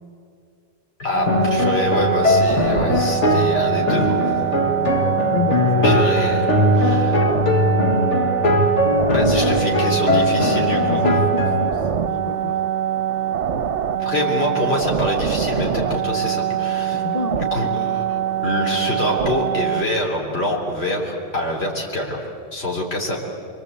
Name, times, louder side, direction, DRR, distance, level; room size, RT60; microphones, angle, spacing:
voice 1, 1.0-4.2 5.8-7.2 9.1-11.1 14.0-17.0 17.4-23.2, left 1 dB, 60° left, -1 dB, 3.9 m, -25 dB
sound 1, 1.1-19.8, right 10 dB, 75° right, 1.2 m, -23 dB
sound 2, 1.3-11.7, left 1 dB, 80° left, 1.8 m, -20 dB
voice 2, 5.3-5.9 8.8-9.8 10.8-12.6 16.9-17.5, left 3 dB, 35° left, 7 dB, 0.8 m, -28 dB
28.0 x 23.0 x 8.3 m, 2.4 s
omnidirectional pair, 1.2 m